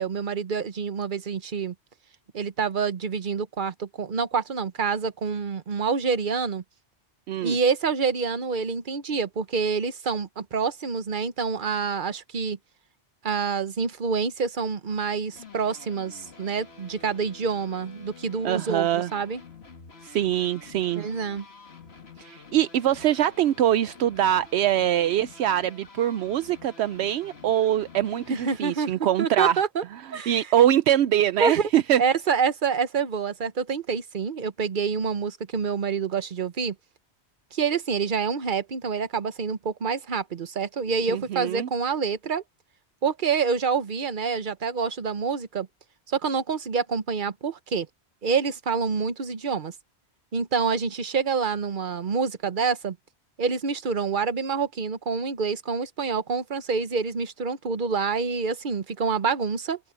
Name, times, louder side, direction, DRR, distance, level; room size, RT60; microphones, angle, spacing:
voice 1, 0.0-1.7 2.3-6.6 7.4-12.6 13.2-19.4 21.0-21.4 28.3-29.8 30.1-30.4 31.4-31.7 32.0-36.7 37.5-42.4 43.0-45.7 46.1-47.9 48.2-49.7 50.3-53.0 53.4-59.8, right 5 dB, 50° right, 1.1 m, -27 dB
sound 1, 14.9-28.6, left 4 dB, 70° left, 2.2 m, -48 dB
voice 2, 18.4-19.1 20.0-21.1 22.2-29.6 30.3-32.0 41.1-41.7, right 11 dB, 75° right, 0.8 m, -23 dB
open air
omnidirectional pair, 1.1 m